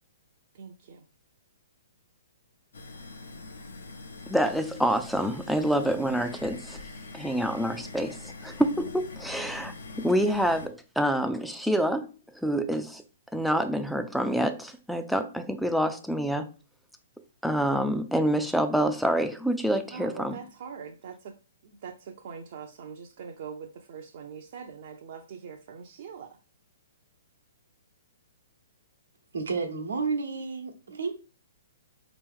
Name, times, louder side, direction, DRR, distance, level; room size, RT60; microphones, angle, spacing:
voice 1, 0.5-1.1 19.9-21.4 21.6-26.4, right 6 dB, 55° right, 0.5 m, -42 dB
sound 1, 2.7-10.7, left 3 dB, 90° left, 0.8 m, -43 dB
voice 2, 4.3-6.8 7.1-12.1 12.3-13.0 13.3-16.5 17.4-20.4, equal, ahead, 0.3 m, -27 dB
voice 3, 29.3-31.1, right 4 dB, 90° right, 1.0 m, -31 dB
4.2 x 3.0 x 3.6 m
hypercardioid pair, 150°, 0 cm